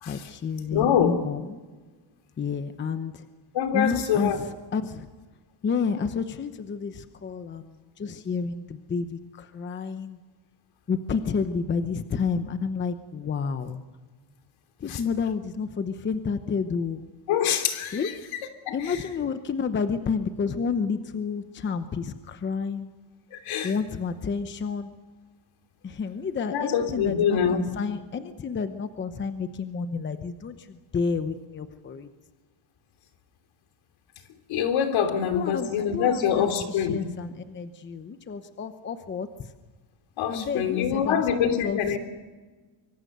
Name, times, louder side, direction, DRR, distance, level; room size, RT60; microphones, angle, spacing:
voice 1, 0.1-1.6 2.4-3.2 3.7-5.1 5.6-10.2 10.9-13.8 14.8-17.0 17.9-18.1 18.7-22.9 23.6-24.9 25.8-32.1 35.2-39.5 40.3-41.8, left 5 dB, 25° left, 9 dB, 0.9 m, -30 dB
voice 2, 0.7-1.2 3.5-4.4 14.9-15.0 17.3-18.1 18.7-19.0 23.3-23.7 26.5-27.6 34.5-37.0 40.2-42.0, left 8 dB, 70° left, 7 dB, 3.2 m, -25 dB
25.0 x 24.5 x 6.8 m, 1.3 s
cardioid pair, 175°, 49 cm